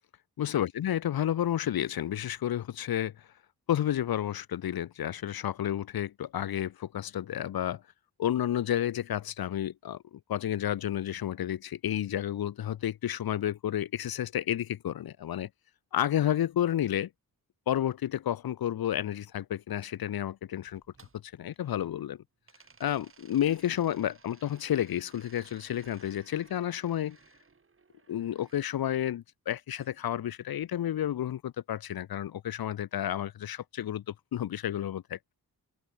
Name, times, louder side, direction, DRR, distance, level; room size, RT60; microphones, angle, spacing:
voice 1, 0.4-3.1 3.7-7.8 8.2-10.0 10.3-15.5 15.9-17.1 17.7-20.8 21.2-22.2 22.8-27.2 28.1-35.3, left 11 dB, 70° left, 0.7 m, -31 dB
sound 1, 20.7-22.1 22.5-28.6 29.7-30.8, right 4 dB, 35° right, 7.5 m, -60 dB
open air
wide cardioid pair, 175°, 37 cm